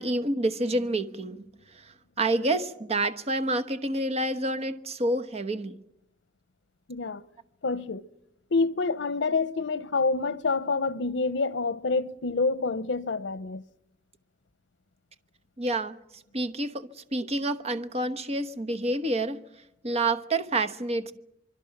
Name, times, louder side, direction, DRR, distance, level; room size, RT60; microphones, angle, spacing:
voice 1, 0.0-1.4 1.7-5.8 15.6-16.0 16.3-19.4 19.8-21.1, right 2 dB, 35° right, 1.0 m, -28 dB
voice 2, 6.9-7.2 7.6-8.0 8.5-13.6, left 3 dB, 85° left, 0.7 m, -27 dB
25.0 x 23.5 x 5.9 m
head